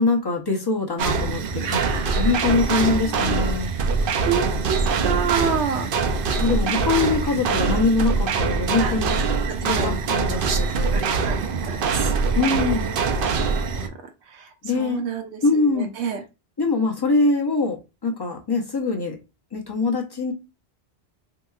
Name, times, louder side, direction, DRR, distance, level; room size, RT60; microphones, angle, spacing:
voice 1, 0.0-1.8 2.2-3.7 6.4-9.2 9.6-11.2 12.4-12.9 14.6-15.0 15.4-15.9 16.6-19.2 19.5-20.3, left 3 dB, 25° left, 0.6 m, -23 dB
sound 1, 1.0-13.9, right 4 dB, 65° right, 0.7 m, -23 dB
voice 2, 1.6-2.5 3.2-3.4 4.3-5.9 8.8-9.0 9.7-10.6 10.9-11.4 11.6-13.1 14.3-16.2, right 7 dB, 90° right, 0.9 m, -29 dB
3.6 x 2.9 x 2.3 m
omnidirectional pair, 1.1 m